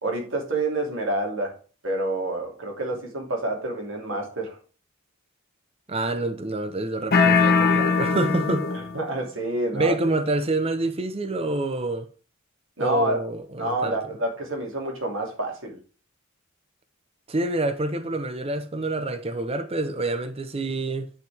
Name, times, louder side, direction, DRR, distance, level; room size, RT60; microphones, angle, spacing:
voice 1, 0.0-4.6 8.9-9.9 12.8-13.2 13.6-15.8, right 1 dB, 70° right, 2.8 m, -28 dB
voice 2, 5.9-8.7 9.7-12.1 12.8-14.0 17.3-21.1, right 2 dB, 30° right, 0.7 m, -27 dB
sound 1, 7.1-9.0, left 5 dB, 50° left, 1.2 m, -20 dB
9.4 x 5.0 x 3.5 m
head